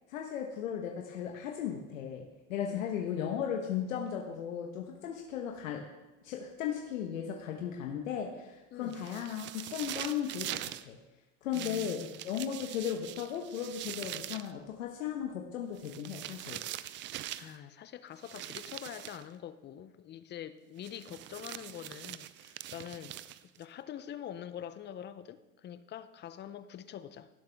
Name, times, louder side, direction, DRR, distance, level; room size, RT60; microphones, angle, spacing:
voice 1, 0.1-5.8 6.2-10.5 10.8-11.0 11.4-16.6, left 8 dB, 90° left, 1.2 m, -36 dB
voice 2, 2.6-3.0 8.7-9.0 11.5-12.3 16.8-27.3, left 10 dB, 30° left, 0.5 m, -45 dB
sound 1, 8.9-10.8 11.5-14.5 15.8-17.6 18.2-19.3 20.8-23.6, right 14 dB, 30° right, 0.4 m, -43 dB
17.5 x 6.9 x 3.5 m
supercardioid pair, 115°, 38 cm